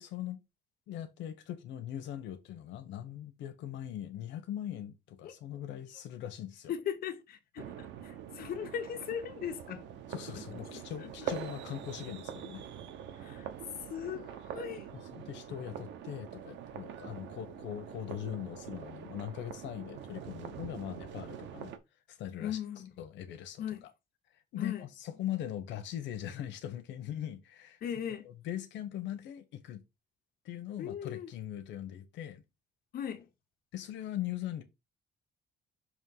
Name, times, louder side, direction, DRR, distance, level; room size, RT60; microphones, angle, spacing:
voice 1, 0.0-0.4 0.9-6.7 10.1-12.7 14.9-21.7 22.1-22.6 23.0-23.6 24.3-27.8 28.2-29.8 30.4-32.4 33.7-34.6, left 11 dB, 85° left, 0.9 m, -40 dB
voice 2, 6.7-9.9 10.3-11.3 13.2-13.5 13.9-14.9 22.4-22.9 23.6-23.8 24.6-24.9 27.8-28.3 30.8-31.3 32.9-33.3, left 9 dB, 55° left, 1.1 m, -39 dB
sound 1, 7.6-21.8, right 9 dB, 85° right, 0.9 m, -44 dB
6.3 x 2.9 x 5.4 m
cardioid pair, 165°, 18 cm